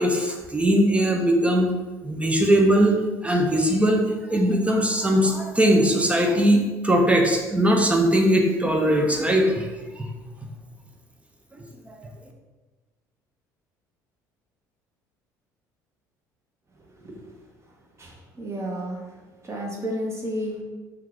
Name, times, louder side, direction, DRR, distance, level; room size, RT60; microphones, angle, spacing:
voice 1, 0.0-1.7 2.0-3.0 3.2-9.7 10.0-10.1, equal, 15° right, 2 dB, 0.5 m, -20 dB
voice 2, 18.0-19.2 19.4-20.6, equal, 30° right, -1 dB, 0.9 m, -32 dB
2.8 x 2.4 x 3.7 m, 1.2 s
hypercardioid pair, 60°, 10 cm